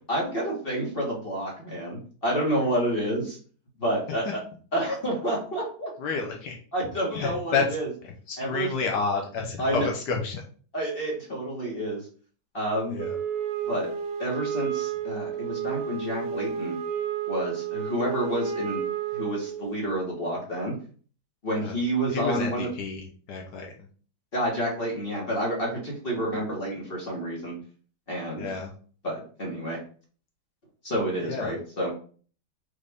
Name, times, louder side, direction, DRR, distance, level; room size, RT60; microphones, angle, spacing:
voice 1, 0.1-3.4 3.8-4.4 4.7-5.9 6.7-7.9 8.4-8.7 9.6-9.9 10.7-12.0 12.5-13.0 13.7-13.9 14.2-16.8 17.3-18.8 19.1-20.7 21.4-22.7 24.3-27.5 28.1-28.5 29.0-29.8 30.8-31.9, right 1 dB, 35° left, -2 dB, 1.3 m, -29 dB
voice 2, 6.0-6.6 7.1-7.6 8.0-10.4 12.9-13.2 21.6-21.7 22.1-23.9 28.4-28.7 31.2-31.5, left 5 dB, 75° left, 1 dB, 1.3 m, -30 dB
Wind instrument woodwind instrument, 13.0-19.8, right 7 dB, 75° right, 1.3 m, -31 dB
5.2 x 2.5 x 3.4 m, 0.42 s
omnidirectional pair, 1.9 m